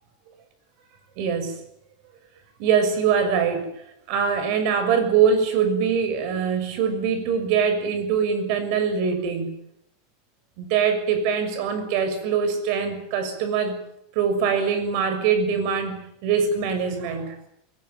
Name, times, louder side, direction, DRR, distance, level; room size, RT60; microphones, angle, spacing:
voice 1, 1.2-1.5 2.6-3.7 4.1-9.5 10.6-13.8 14.1-17.5, right 6 dB, 55° right, 10 dB, 6.5 m, -23 dB
22.0 x 19.5 x 9.2 m, 0.75 s
supercardioid pair, 145°, 0 cm